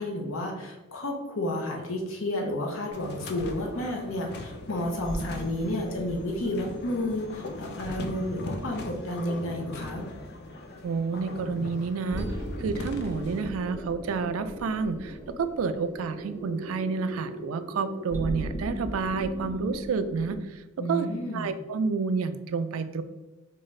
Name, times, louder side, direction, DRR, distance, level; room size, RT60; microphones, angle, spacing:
voice 1, 0.0-10.1 20.8-21.6, left 1 dB, 80° left, 1 dB, 0.7 m, -31 dB
sound 1, 2.9-13.5, left 2 dB, 50° left, 0.4 m, -40 dB
sound 2, 5.0-20.4, equal, 20° left, 0.8 m, -39 dB
voice 2, 10.8-12.3 12.6-20.6 20.9-21.1 21.3-23.0, right 4 dB, 90° right, 11 dB, 0.3 m, -29 dB
4.5 x 2.4 x 3.1 m, 1.1 s
head